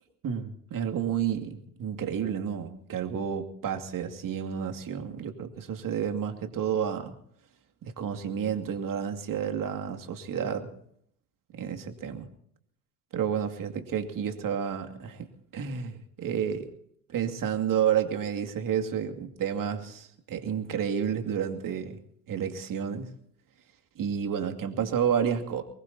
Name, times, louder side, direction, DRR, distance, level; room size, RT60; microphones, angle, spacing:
voice 1, 0.2-7.1 7.8-10.7 11.5-12.3 13.1-15.3 15.5-16.7 17.1-22.0 22.3-23.1 24.0-25.6, right 8 dB, 45° right, 5 dB, 2.5 m, -30 dB
23.5 x 20.5 x 2.8 m, 0.67 s
hypercardioid pair, 70°, 46 cm